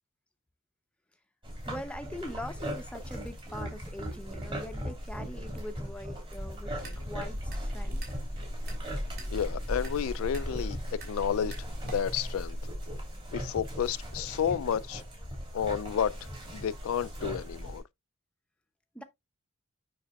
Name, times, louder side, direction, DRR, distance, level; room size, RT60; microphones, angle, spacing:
sound 1, 1.4-17.8, equal, 25° right, 2.9 m, -37 dB
voice 1, 1.7-8.1 18.9-19.0, left 1 dB, 5° left, 0.7 m, -42 dB
sound 2, 6.7-12.0, right 1 dB, 45° right, 2.9 m, -48 dB
voice 2, 9.3-11.6 11.8-12.6 13.3-15.0 15.5-16.2 16.5-17.8, left 8 dB, 75° left, 0.3 m, -31 dB
7.2 x 6.0 x 2.3 m
head